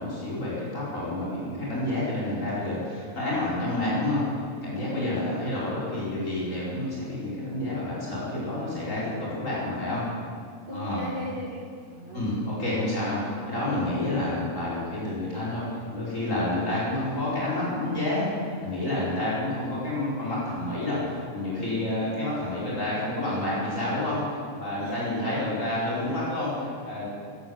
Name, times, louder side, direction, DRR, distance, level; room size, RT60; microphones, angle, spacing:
voice 1, 0.0-10.0 10.7-11.0 12.1-27.1, left 1 dB, 70° left, -7 dB, 5.4 m, -29 dB
voice 2, 4.9-5.6 10.7-12.5 24.8-25.5, equal, 40° right, -3 dB, 2.1 m, -38 dB
15.0 x 12.0 x 7.9 m, 2.2 s
omnidirectional pair, 1.4 m